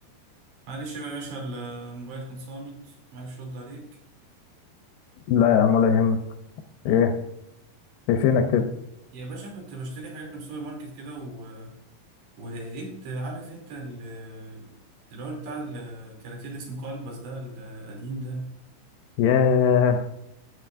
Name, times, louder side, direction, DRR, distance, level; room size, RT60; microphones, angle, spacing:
voice 1, 0.7-3.9 6.8-7.0 9.1-11.7 12.4-14.7 15.1-18.5, right 2 dB, 80° right, -1 dB, 5.1 m, -37 dB
voice 2, 5.3-6.2 6.9-7.1 8.1-8.6 19.2-20.1, left 7 dB, 80° left, 6 dB, 2.3 m, -19 dB
13.0 x 8.0 x 2.5 m, 0.81 s
omnidirectional pair, 4.9 m